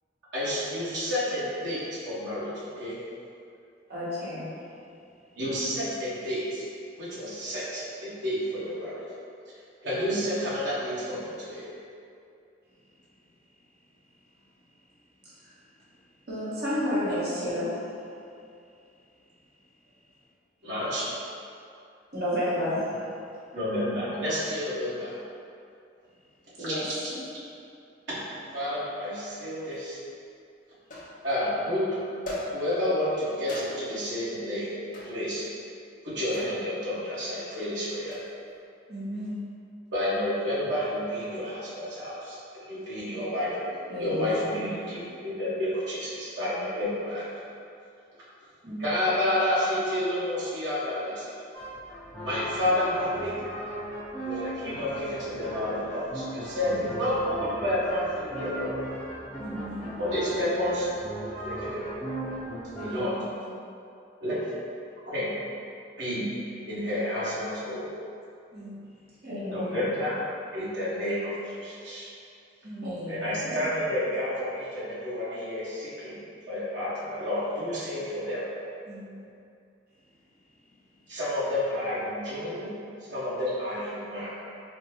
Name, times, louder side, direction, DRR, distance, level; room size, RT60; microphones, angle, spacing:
voice 1, 0.3-2.9 5.4-6.6 7.0-9.0 9.8-11.7 20.6-21.1 23.5-25.1 26.6-27.0 28.1-28.2 28.5-30.0 31.2-31.9 32.5-34.8 35.0-35.4 36.0-38.2 39.9-43.6 44.0-47.3 48.8-51.4 52.2-53.7 54.2-58.8 60.0-60.9 61.2-62.1 62.8-63.1 64.2-64.4 65.1-65.3 66.0-66.3 66.7-67.9 69.5-70.2 70.5-72.1 73.1-76.2 76.5-78.4 81.1-82.7 83.1-84.3, left 1 dB, 80° right, -12 dB, 1.5 m, -30 dB
voice 2, 3.9-4.5 15.2-15.5 16.3-17.9 22.1-22.9 26.6-26.8 43.9-44.7 69.2-69.9 72.8-73.5, left 1 dB, 60° right, -10 dB, 1.0 m, -31 dB
sound 1, 29.7-29.8 30.9-31.5 32.3-32.9 33.5-34.0 34.9-35.2 36.3-36.7 37.9-38.3, left 2 dB, 45° left, 0.6 m, -38 dB
voice 3, 38.9-39.4 43.0-43.1 48.6-48.9 56.7-57.0 59.4-60.0 62.7-63.5 68.5-68.8 72.6-72.9 78.9-79.3, equal, 35° right, -12 dB, 0.6 m, -38 dB
sound 2, 51.5-63.1, right 1 dB, 10° left, 0.9 m, -37 dB
4.3 x 2.2 x 2.9 m, 2.5 s
head